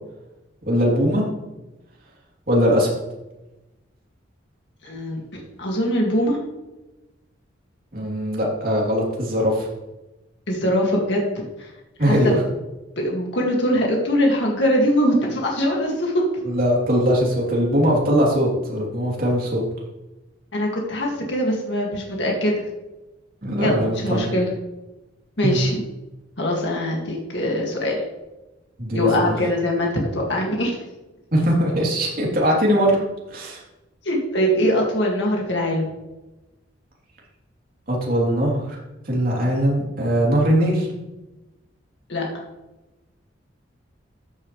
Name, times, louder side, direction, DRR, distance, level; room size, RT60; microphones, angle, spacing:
voice 1, 0.7-1.2 2.5-2.9 7.9-9.7 12.0-12.4 16.5-19.6 23.4-24.3 25.4-25.6 28.8-29.3 31.3-33.0 33.3-33.6 37.9-38.8 39.1-40.9, equal, 50° right, -3 dB, 3.2 m, -20 dB
voice 2, 4.8-5.2 5.6-6.4 10.5-11.7 12.1-12.4 13.0-16.2 20.5-22.6 23.6-24.5 25.4-25.8 26.4-28.0 28.9-30.8 34.0-35.8 42.1-42.2, equal, 65° left, -1 dB, 2.2 m, -22 dB
14.0 x 7.5 x 3.2 m, 1.0 s
head